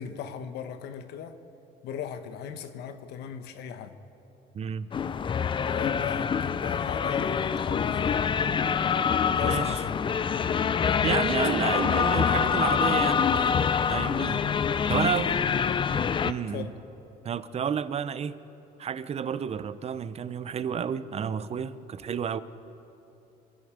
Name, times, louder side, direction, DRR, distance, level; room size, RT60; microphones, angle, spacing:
voice 1, 0.0-1.4 1.8-4.0 5.6-8.3 9.4-9.9 10.3-10.7 11.4-12.5 14.3-15.8 16.5-16.7, left 8 dB, 75° left, 9 dB, 1.1 m, -39 dB
voice 2, 4.5-4.9 9.4-9.8 10.8-13.5 13.9-14.4 14.9-15.3 16.2-16.7 17.2-18.4 18.8-22.4, right 7 dB, 40° right, 15 dB, 0.6 m, -31 dB
sound 1, 4.9-16.3, left 7 dB, 30° left, 0.4 m, -25 dB
26.0 x 11.0 x 5.1 m, 2.9 s
cardioid pair, 110°, 17 cm